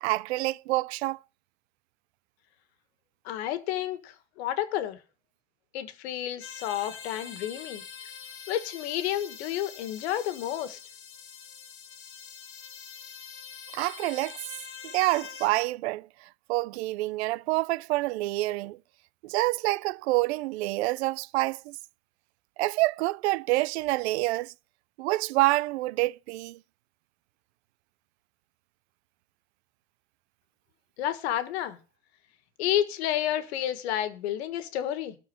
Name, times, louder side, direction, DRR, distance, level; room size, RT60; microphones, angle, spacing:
voice 1, 0.0-1.2 13.7-14.4 14.8-16.1 16.5-18.8 19.2-21.8 22.6-24.5 25.0-26.6, right 20 dB, 90° right, 0.5 m, -27 dB
voice 2, 3.2-5.0 5.7-7.8 8.5-10.8 31.0-31.8 32.6-35.2, left 11 dB, 85° left, 1.6 m, -30 dB
sound 1, 6.4-15.5, left 7 dB, 40° left, 2.1 m, -44 dB
12.5 x 4.5 x 7.6 m
supercardioid pair, 125°, 32 cm